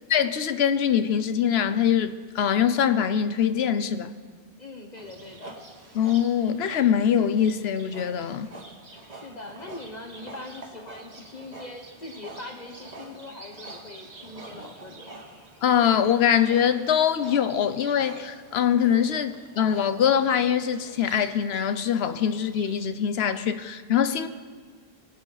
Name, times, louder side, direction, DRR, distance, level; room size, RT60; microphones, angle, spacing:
voice 1, 0.1-4.1 5.9-8.5 15.6-24.3, left 8 dB, 75° left, 0.9 m, -23 dB
voice 2, 4.6-5.6 9.1-15.3, left 2 dB, 45° left, 1.1 m, -42 dB
Livestock farm animals working animals, 5.0-22.9, right 2 dB, 40° right, 1.6 m, -46 dB
22.5 x 8.5 x 3.9 m
omnidirectional pair, 1.1 m